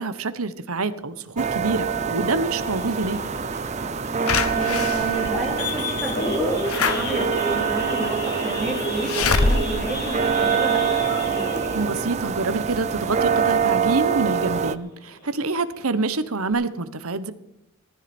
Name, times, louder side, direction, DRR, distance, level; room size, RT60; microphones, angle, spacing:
voice 1, 0.0-3.2 11.7-17.3, right 3 dB, 75° right, 13 dB, 1.0 m, -26 dB
sound 1, 1.4-14.8, right 6 dB, 30° right, 0.5 m, -25 dB
Idling / Accelerating revving vroom / Sawing, 2.6-13.7 14.1-14.3 14.6-14.7 15.1-15.4 15.9-16.0 16.2-16.5, equal, 45° left, 4.3 m, -32 dB
voice 2, 4.2-11.1, right 1 dB, ahead, -1 dB, 3.4 m, -32 dB
Slam / Alarm, 4.3-11.1 11.6-11.7 11.9-12.0, left 4 dB, 75° left, 1.1 m, -26 dB
19.0 x 13.5 x 4.4 m, 0.86 s
head